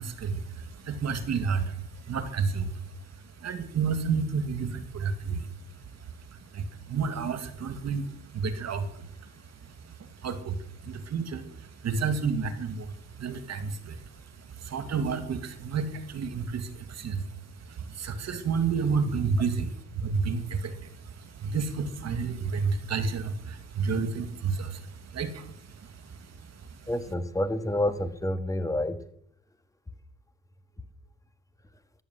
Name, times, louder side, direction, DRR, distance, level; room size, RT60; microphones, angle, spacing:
voice 1, 0.0-26.9, right 5 dB, 60° right, 9 dB, 2.3 m, -31 dB
voice 2, 26.9-29.0, left 1 dB, 10° left, 9 dB, 1.7 m, -28 dB
14.0 x 11.0 x 7.8 m, 0.70 s
cardioid pair, 90°, 30 cm